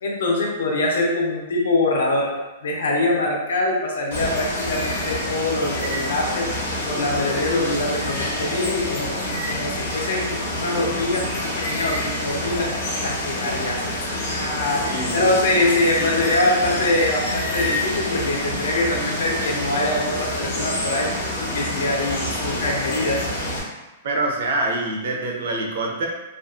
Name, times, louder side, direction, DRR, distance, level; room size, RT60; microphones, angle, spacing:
voice 1, 0.0-2.3 2.6-6.5 6.8-9.2 9.5-12.7 13.0-14.8 15.1-21.1 21.4-23.3, left 2 dB, 85° left, -1 dB, 0.7 m, -23 dB
Water, 4.1-23.6, left 1 dB, 45° left, 0.8 m, -27 dB
voice 2, 14.8-15.7 16.0-16.1 24.0-26.1, right 2 dB, 50° right, 0 dB, 0.5 m, -26 dB
2.5 x 2.4 x 2.4 m, 1.1 s
supercardioid pair, 175°, 0 cm